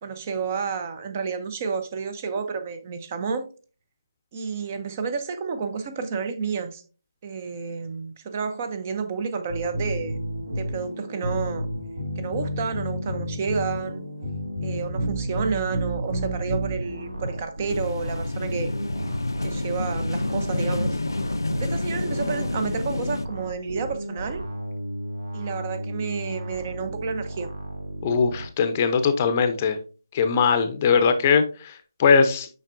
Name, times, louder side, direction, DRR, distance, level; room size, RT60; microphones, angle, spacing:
voice 1, 0.0-3.5 4.3-6.8 7.2-10.2 10.5-11.7 12.2-14.1 14.6-18.7 19.4-21.0 21.6-24.4 25.3-27.5, right 5 dB, 30° right, 0.7 m, -30 dB
sound 1, 9.5-17.3, equal, 45° right, 1.9 m, -30 dB
sound 2, 16.1-28.5, right 1 dB, 85° right, 1.5 m, -35 dB
sound 3, 17.7-23.3, left 2 dB, 80° left, 0.5 m, -28 dB
voice 2, 28.0-29.8 30.1-32.5, left 5 dB, 30° left, 0.6 m, -20 dB
7.2 x 5.3 x 2.6 m
figure-of-eight pair, 155°, 2 cm